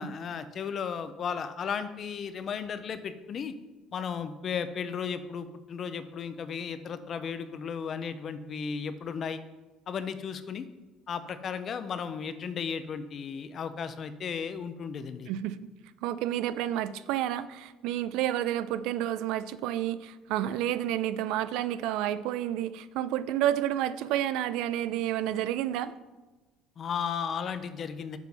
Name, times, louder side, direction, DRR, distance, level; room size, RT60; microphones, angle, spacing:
voice 1, 0.0-3.6 3.9-9.4 9.9-10.7 11.1-15.3 26.8-28.2, left 6 dB, 30° left, 12 dB, 0.4 m, -35 dB
voice 2, 16.0-25.9, right 12 dB, 65° right, 15 dB, 0.4 m, -30 dB
7.0 x 6.2 x 5.3 m, 1.2 s
cardioid pair, 180°, 0 cm